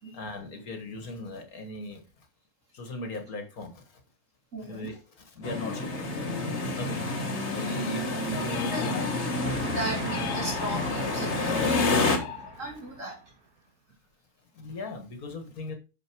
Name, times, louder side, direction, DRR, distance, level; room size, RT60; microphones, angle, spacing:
voice 1, 0.1-2.3 2.7-4.0 4.6-6.2 6.7-7.0 7.5-9.1 9.6-9.8 12.5-12.6 14.5-15.8, left 2 dB, 70° left, 5 dB, 2.0 m, -39 dB
voice 2, 4.5-4.9 8.3-9.0 9.7-11.5 11.9-13.2, equal, 55° right, -2 dB, 4.0 m, -37 dB
sound 1, 5.4-12.2, left 3 dB, 45° left, 1.8 m, -28 dB
sound 2, 8.4-9.5 10.1-11.1 11.7-12.9, left 10 dB, 90° left, 1.4 m, -39 dB
Train, 9.4-13.4, right 4 dB, 75° right, 2.1 m, -40 dB
9.2 x 6.6 x 4.6 m, 0.31 s
omnidirectional pair, 1.6 m